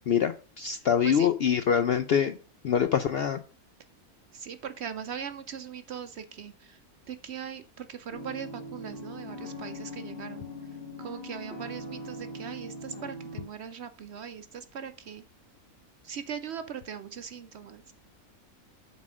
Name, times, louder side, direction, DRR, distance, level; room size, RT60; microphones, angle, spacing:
voice 1, 0.1-2.4 2.6-3.4, left 8 dB, 65° left, 10 dB, 0.6 m, -25 dB
voice 2, 4.3-6.8 7.1-10.5 11.0-15.3 16.0-17.9, right 8 dB, 65° right, 10 dB, 0.7 m, -40 dB
sound 1, 8.1-13.4, left 1 dB, 40° left, 2.2 m, -41 dB
7.2 x 4.1 x 6.2 m, 0.36 s
omnidirectional pair, 1.5 m